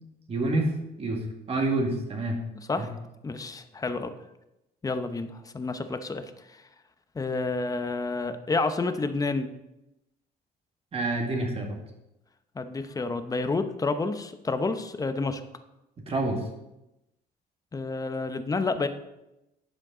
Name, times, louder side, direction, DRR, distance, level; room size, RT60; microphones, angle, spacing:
voice 1, 0.3-0.7 1.0-1.2 1.5-2.4 2.8-2.9 10.9-11.8 16.1-16.4, right 2 dB, 35° right, 2 dB, 2.0 m, -27 dB
voice 2, 3.2-4.1 4.8-6.2 7.1-9.5 12.6-15.4 17.7-18.9, left 3 dB, 20° left, 9 dB, 0.8 m, -29 dB
11.0 x 7.4 x 3.9 m, 0.92 s
cardioid pair, 110°, 17 cm